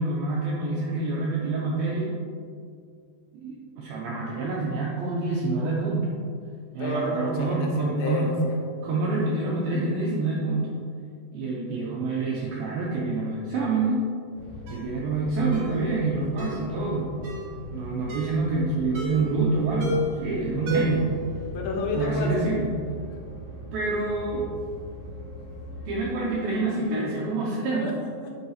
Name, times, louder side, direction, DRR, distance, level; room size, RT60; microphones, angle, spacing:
voice 1, 0.0-2.1 3.3-6.2 6.7-8.3 8.8-10.7 11.3-14.0 14.7-17.1 17.7-21.1 21.9-22.7 23.7-24.5 25.9-27.9, right 3 dB, 85° right, -4 dB, 2.1 m, -27 dB
voice 2, 6.8-8.6 21.5-22.5 27.7-28.4, left 2 dB, 80° left, 0 dB, 3.2 m, -30 dB
sound 1, 14.3-26.1, left 1 dB, 60° left, 1.1 m, -40 dB
Ringtone, 14.7-14.9 15.5-15.7 16.4-16.6 17.2-17.5 18.1-18.4 18.9-19.3 19.8-20.2 20.7-21.1 21.4-21.5, equal, 60° right, 1.8 m, -31 dB
9.4 x 5.5 x 2.9 m, 2.2 s
omnidirectional pair, 5.1 m